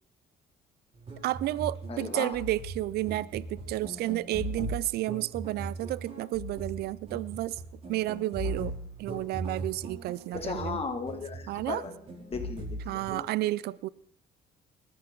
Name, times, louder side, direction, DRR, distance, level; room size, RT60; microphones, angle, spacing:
sound 1, 0.9-13.3, right 1 dB, 40° right, 5.9 m, -39 dB
voice 1, 1.2-7.6 7.9-8.7 9.0-10.8 11.5-11.8 12.9-13.9, right 16 dB, 70° right, 21 dB, 0.5 m, -31 dB
voice 2, 1.9-2.3 10.3-11.9 12.3-13.2, left 5 dB, 35° left, 5 dB, 2.2 m, -36 dB
20.0 x 13.0 x 3.9 m, 0.65 s
cardioid pair, 110°, 17 cm